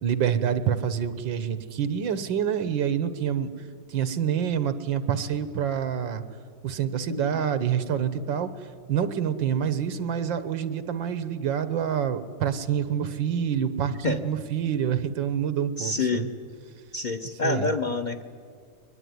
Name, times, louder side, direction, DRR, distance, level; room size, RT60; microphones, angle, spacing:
voice 1, 0.0-3.5 3.9-6.2 6.6-8.5 8.9-16.3 17.4-17.7, right 8 dB, 80° right, 13 dB, 1.8 m, -27 dB
voice 2, 7.1-7.4 14.0-14.2 15.8-16.3 16.9-18.2, left 3 dB, 65° left, 9 dB, 0.4 m, -27 dB
23.0 x 20.0 x 9.6 m, 2.1 s
omnidirectional pair, 2.1 m